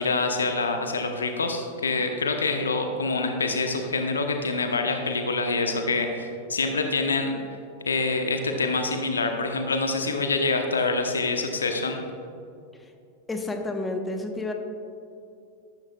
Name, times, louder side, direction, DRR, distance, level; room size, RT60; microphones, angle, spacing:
voice 1, 0.0-7.3 7.8-12.0, left 3 dB, 70° left, 5 dB, 0.9 m, -26 dB
voice 2, 13.3-14.5, left 2 dB, 10° left, 4 dB, 1.1 m, -30 dB
13.5 x 12.5 x 2.4 m, 2.5 s
figure-of-eight pair, 90°, 0 cm